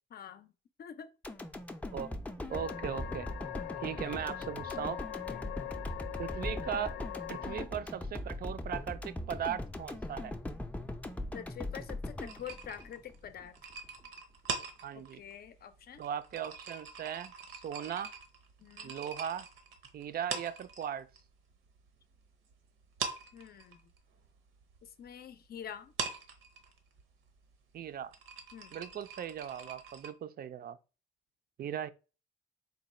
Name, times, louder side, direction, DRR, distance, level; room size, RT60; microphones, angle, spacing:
voice 1, 0.1-0.5 0.8-1.1 5.3-5.6 11.3-13.6 14.9-16.0 18.6-19.0 23.3-23.8 24.8-25.9 28.5-28.8, left 9 dB, 50° left, 0.5 m, -46 dB
sound 1, 1.2-13.5 13.8-13.9, left 1 dB, 5° left, 0.5 m, -40 dB
sound 2, 2.5-7.7, left 13 dB, 90° left, 0.6 m, -42 dB
voice 2, 2.5-3.3 3.8-5.0 6.2-7.0 7.3-10.3 14.8-15.2 16.0-18.1 18.8-19.5 19.9-21.1 27.7-28.1 28.7-30.8 31.6-31.9, right 9 dB, 50° right, 0.4 m, -38 dB
sound 3, 12.2-21.2 21.5-22.5 22.8-30.1, right 5 dB, 80° right, 0.8 m, -43 dB
3.9 x 2.2 x 4.2 m
cardioid pair, 90°, 20 cm